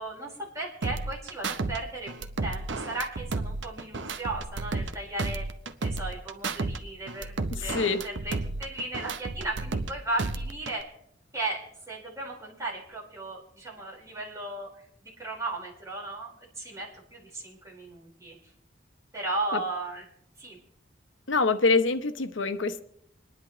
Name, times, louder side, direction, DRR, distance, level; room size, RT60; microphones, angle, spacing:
voice 1, 0.0-5.5 5.8-10.9 11.3-14.7 15.0-16.3 16.6-18.3 19.1-20.0 20.4-20.6, right 2 dB, 15° right, 4.6 m, -36 dB
sound 1, 0.8-1.8 2.1-4.9 5.2-6.8 7.1-9.9 10.2-10.8, right 3 dB, 65° right, 0.8 m, -32 dB
voice 2, 7.5-8.0 19.5-19.6 21.3-22.8, left 4 dB, 85° left, 1.0 m, -25 dB
27.0 x 10.5 x 3.1 m
head